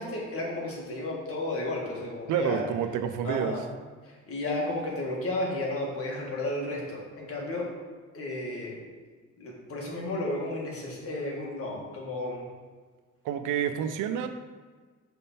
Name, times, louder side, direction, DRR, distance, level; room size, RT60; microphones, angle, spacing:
voice 1, 0.0-2.6 3.2-3.6 4.0-7.7 8.1-8.8 9.4-12.5, left 2 dB, 50° left, -2 dB, 1.8 m, -33 dB
voice 2, 2.3-3.5 13.2-14.3, right 8 dB, 85° right, 9 dB, 0.6 m, -28 dB
6.5 x 3.6 x 4.2 m, 1.5 s
cardioid pair, 90°, 30 cm